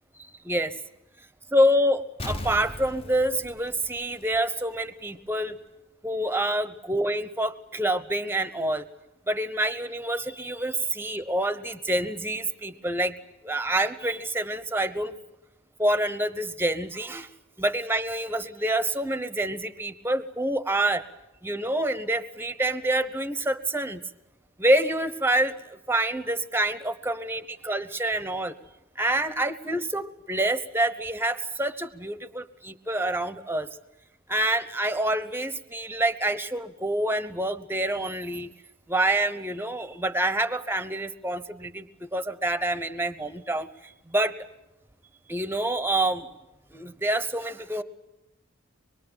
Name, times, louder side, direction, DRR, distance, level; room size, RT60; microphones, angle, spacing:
voice 1, 1.5-5.6 6.0-8.8 9.3-13.2 13.4-15.2 15.8-17.3 17.6-21.0 21.4-24.0 24.6-28.5 29.0-33.7 34.3-38.5 38.9-44.3 45.3-46.3 46.7-47.8, right 1 dB, 10° right, 13 dB, 1.0 m, -27 dB
Explosion, 2.2-4.8 5.1-5.2, left 1 dB, 30° left, 1.0 m, -38 dB
25.0 x 22.0 x 9.0 m, 0.94 s
head